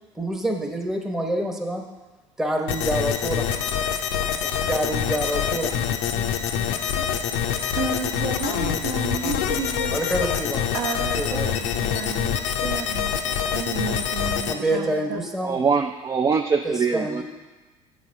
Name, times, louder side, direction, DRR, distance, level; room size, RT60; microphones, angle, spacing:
voice 1, 0.1-1.8 2.4-3.5 4.4-6.3 9.9-10.7 11.2-11.5 13.5-13.6 14.5-15.6 16.6-17.2, right 1 dB, ahead, 2 dB, 1.0 m, -27 dB
sound 1, 2.7-14.5, left 8 dB, 60° left, 0.6 m, -26 dB
voice 2, 7.8-9.9 10.7-12.3 12.6-15.2, right 5 dB, 50° right, 2 dB, 1.1 m, -32 dB
voice 3, 15.4-17.2, right 5 dB, 20° right, 4 dB, 0.4 m, -23 dB
7.9 x 4.2 x 6.2 m, 1.2 s
figure-of-eight pair, 65°, 17 cm